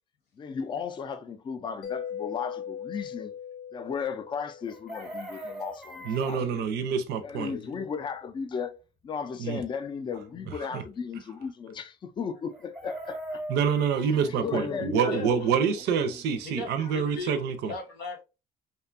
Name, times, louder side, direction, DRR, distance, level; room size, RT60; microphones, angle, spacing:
voice 1, 0.4-3.3 3.7-6.7 7.2-8.7 9.0-13.4 14.3-15.4 15.7-16.2, left 6 dB, 30° left, 0.3 m, -35 dB
Mallet percussion, 1.8-5.3, left 8 dB, 70° left, 0.7 m, -39 dB
Chicken rooster, 4.6-6.4 12.5-14.3 16.6-16.7 16.9-17.2, right 1 dB, 5° right, 0.7 m, -40 dB
voice 2, 6.1-7.5 9.4-9.6 10.7-10.8 13.5-17.7, right 7 dB, 75° right, 0.5 m, -27 dB
voice 3, 15.1-15.5 16.4-18.2, left 3 dB, 85° left, 1.0 m, -38 dB
2.6 x 2.2 x 2.4 m
cardioid pair, 110°, 17 cm